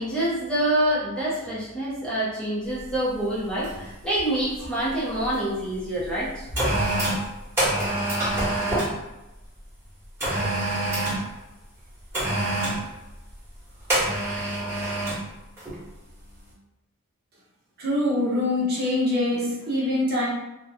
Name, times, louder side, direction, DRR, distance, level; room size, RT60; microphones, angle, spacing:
voice 1, 0.0-6.5, right 1 dB, 5° left, -9 dB, 0.7 m, -26 dB
sound 1, 2.8-3.0 3.6-5.4 6.0-9.0 10.2-11.3 12.1-12.8 13.9-15.2 15.6-15.8, right 1 dB, 10° right, 1.1 m, -26 dB
voice 2, 17.8-20.3, left 1 dB, 45° right, -6 dB, 0.8 m, -24 dB
2.6 x 2.2 x 2.6 m, 0.97 s
head